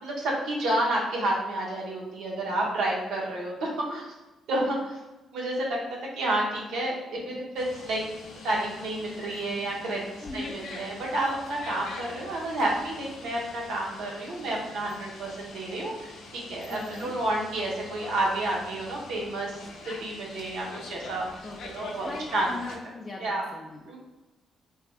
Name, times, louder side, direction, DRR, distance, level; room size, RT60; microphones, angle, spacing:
voice 1, 0.0-4.1 4.5-5.0 5.3-5.8 6.2-8.0 8.4-10.0 10.3-19.6 20.0-21.3 21.7-22.5 23.2-23.4 23.9-24.0, right 1 dB, 80° right, -2 dB, 0.9 m, -30 dB
sound 1, 7.6-22.8, left 3 dB, 80° left, 0.6 m, -44 dB
voice 2, 10.2-10.6 16.7-17.1 21.4-21.6 21.9-24.0, left 3 dB, 25° left, -3 dB, 0.4 m, -40 dB
3.5 x 3.1 x 2.2 m, 1.1 s
cardioid pair, 90°, 0 cm